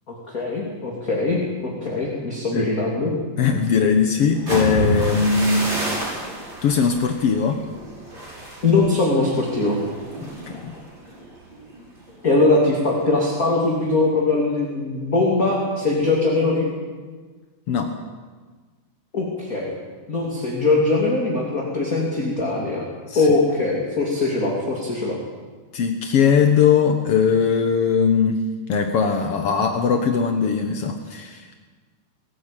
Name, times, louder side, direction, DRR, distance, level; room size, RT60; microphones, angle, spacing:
voice 1, 0.1-3.1 8.6-9.8 12.2-16.7 19.1-19.7 20.1-22.9 23.1-25.2, left 3 dB, 25° left, -2 dB, 2.9 m, -21 dB
voice 2, 3.4-6.1 6.6-7.6 10.2-10.7 17.7-17.9 23.1-23.3 25.7-28.4 28.7-31.6, left 6 dB, 75° left, 5 dB, 1.3 m, -20 dB
sound 1, 4.3-12.2 12.5-12.8 13.2-13.6, equal, 30° right, 6.9 m, -30 dB
22.5 x 15.0 x 9.1 m, 1.4 s
omnidirectional pair, 4.5 m